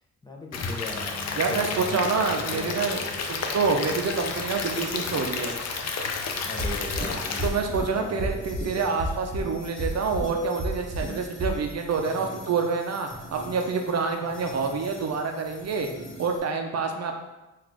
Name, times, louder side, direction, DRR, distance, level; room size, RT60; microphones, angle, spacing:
voice 1, 0.2-3.2 6.4-7.5 7.7-8.3 8.6-9.0, left 2 dB, 15° left, -1 dB, 0.6 m, -38 dB
Stream / Liquid, 0.5-7.5, left 4 dB, 60° left, 0.6 m, -31 dB
voice 2, 1.4-3.0 3.3-5.6 7.4-15.9 16.2-17.2, right 4 dB, 60° right, 4 dB, 0.6 m, -27 dB
sound 1, 3.0-16.4, left 1 dB, 40° left, 1.3 m, -46 dB
sound 2, 6.6-7.1 7.4-7.9 8.2-8.7 9.0-9.5 9.8-10.3 10.6-11.1 11.4-11.5, equal, 25° right, 0.9 m, -29 dB
4.0 x 2.5 x 4.5 m, 1.0 s
cardioid pair, 105°, 29 cm